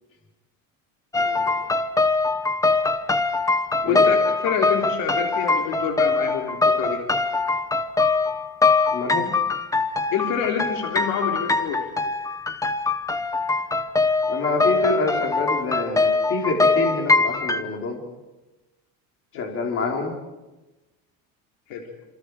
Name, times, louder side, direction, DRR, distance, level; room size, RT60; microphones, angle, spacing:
sound 1, 1.1-17.6, left 3 dB, 10° left, 0.9 m, -22 dB
voice 1, 1.2-1.5 3.8-7.0 10.1-11.9 19.3-19.5 21.7-21.9, left 7 dB, 70° left, 2 dB, 3.7 m, -27 dB
voice 2, 8.9-9.3 14.2-18.0 19.3-20.1, left 3 dB, 35° left, 1 dB, 4.5 m, -26 dB
28.5 x 27.5 x 5.1 m, 1.1 s
cardioid pair, 165°, 37 cm